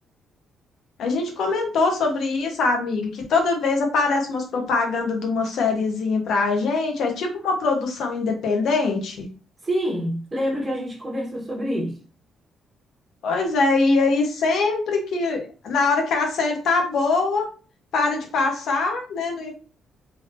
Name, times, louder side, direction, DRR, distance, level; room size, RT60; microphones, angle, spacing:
voice 1, 1.0-9.3 13.2-17.5 17.9-19.5, left 3 dB, 70° left, 1.2 m, -23 dB
voice 2, 9.6-12.0, equal, 25° right, 1.3 m, -26 dB
3.6 x 3.6 x 2.6 m
cardioid pair, 90°, 0 cm